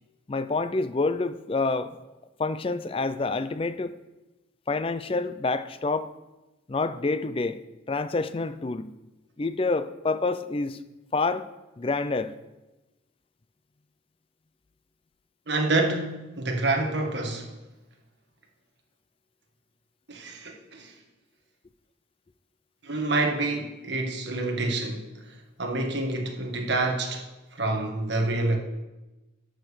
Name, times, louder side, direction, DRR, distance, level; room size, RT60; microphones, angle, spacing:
voice 1, 0.3-2.0 2.4-3.9 4.7-6.1 6.7-7.6 7.9-8.9 9.4-10.8 11.1-11.5 11.8-12.3, left 3 dB, 25° left, 0.4 m, -27 dB
voice 2, 15.5-17.5 20.1-20.9 22.8-25.1 25.6-27.3 27.5-28.6, right 2 dB, 55° right, 1.5 m, -27 dB
12.0 x 5.2 x 6.5 m
head